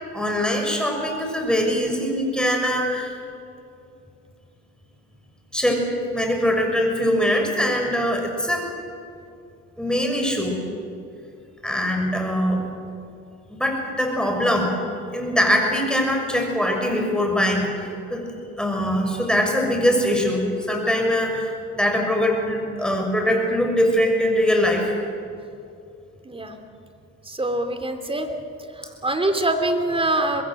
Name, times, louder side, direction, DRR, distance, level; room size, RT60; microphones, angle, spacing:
voice 1, 0.1-3.2 5.5-8.7 9.8-10.6 11.6-12.6 13.5-14.7 15.1-17.7 18.1-18.3 18.6-25.0, equal, 5° left, 2 dB, 6.2 m, -22 dB
voice 2, 26.2-26.6 27.3-28.3 28.8-30.4, right 2 dB, 20° right, 7 dB, 2.9 m, -24 dB
25.5 x 21.0 x 7.9 m, 2.6 s
cardioid pair, 90°, 30 cm